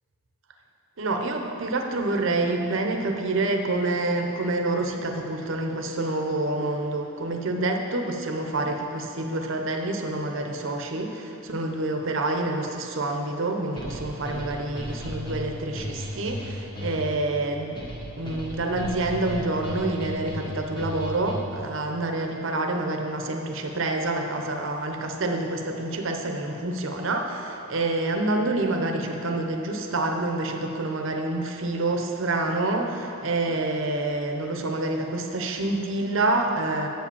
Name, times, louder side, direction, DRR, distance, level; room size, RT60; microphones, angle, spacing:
voice 1, 1.0-17.8 18.2-36.9, right 2 dB, 60° right, 3 dB, 0.7 m, -27 dB
sound 1, 13.8-21.7, equal, 20° left, 1.4 m, -35 dB
7.6 x 5.1 x 7.0 m, 2.9 s
head